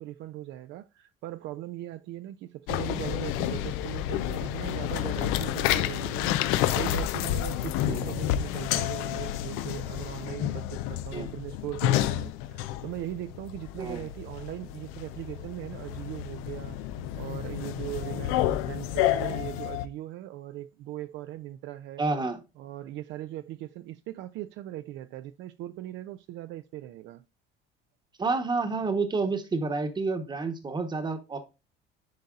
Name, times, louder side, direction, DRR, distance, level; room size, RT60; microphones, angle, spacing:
voice 1, 0.0-16.8 17.2-22.0 22.6-27.2, right 14 dB, 65° right, 0.4 m, -39 dB
sound 1, 2.7-19.9, left 12 dB, 90° left, 0.6 m, -30 dB
voice 2, 22.0-22.4 28.2-31.4, right 3 dB, 20° right, 1.0 m, -29 dB
10.5 x 4.0 x 2.4 m
cardioid pair, 130°, 21 cm